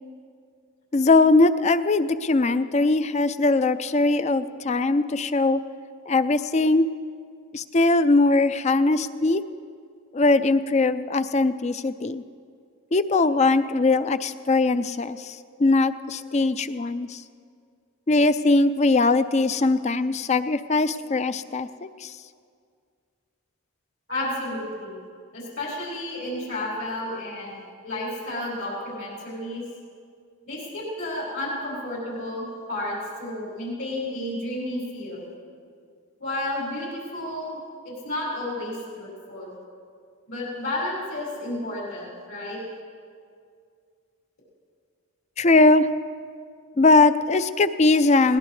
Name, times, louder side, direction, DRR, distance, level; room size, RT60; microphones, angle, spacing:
voice 1, 0.9-5.6 6.1-6.9 7.5-9.4 10.1-12.2 12.9-17.2 18.1-21.7 22.0-22.1 45.4-45.9 46.8-48.4, left 3 dB, 30° left, 13 dB, 0.4 m, -20 dB
voice 2, 24.1-25.0 25.3-29.6 30.5-35.3 36.2-37.6 37.8-39.5 40.3-42.6, left 1 dB, 70° left, -6 dB, 5.2 m, -32 dB
20.5 x 18.5 x 3.3 m, 2.2 s
head